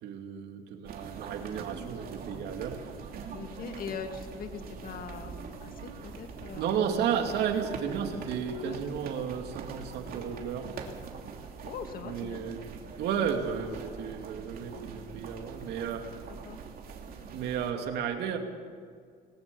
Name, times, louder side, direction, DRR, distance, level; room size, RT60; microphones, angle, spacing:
voice 1, 0.0-2.8 6.5-10.7 12.0-12.6 13.0-16.1 17.3-18.4, right 7 dB, 75° right, 4 dB, 2.7 m, -33 dB
sound 1, 0.8-17.7, right 5 dB, 60° right, 3.0 m, -43 dB
voice 2, 3.3-6.9 8.6-8.8 11.6-12.4 13.0-13.3 16.4-16.6, left 6 dB, 60° left, 6 dB, 2.0 m, -41 dB
20.5 x 19.0 x 7.1 m, 2.1 s
cardioid pair, 110°, 17 cm